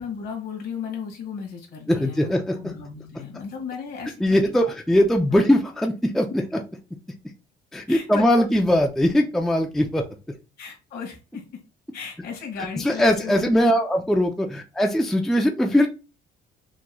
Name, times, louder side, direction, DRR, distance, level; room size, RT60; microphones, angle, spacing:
voice 1, 0.0-4.2 4.6-4.7 5.3-5.4 7.9-8.5 10.6-11.4 11.9-13.5, left 6 dB, 55° left, 1 dB, 1.9 m, -35 dB
voice 2, 1.9-2.7 4.2-6.6 7.7-10.0 12.6-16.0, equal, ahead, 3 dB, 0.4 m, -21 dB
6.1 x 3.0 x 2.2 m, 0.31 s
cardioid pair, 160°, 20 cm